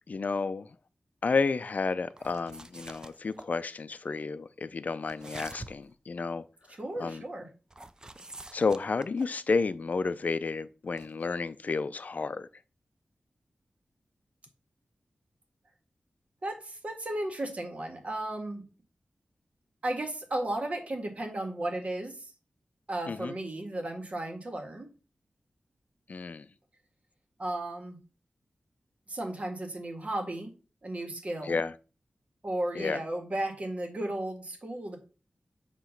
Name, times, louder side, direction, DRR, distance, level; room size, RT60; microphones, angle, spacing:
voice 1, 0.1-0.8 1.2-7.2 8.5-12.5 23.1-23.3 26.1-26.5 31.4-31.7 32.8-33.0, left 4 dB, 50° left, 0.5 m, -31 dB
sound 1, 2.1-3.5 5.1-5.9 7.7-9.4 11.0-11.2, right 2 dB, 20° right, 0.5 m, -46 dB
voice 2, 6.8-7.5 16.4-18.6 19.8-22.3 22.9-24.9 27.4-28.0 29.1-30.5 30.8-31.6 32.4-35.0, right 1 dB, 40° right, 1.7 m, -34 dB
8.1 x 3.0 x 5.8 m
wide cardioid pair, 115°, 3 cm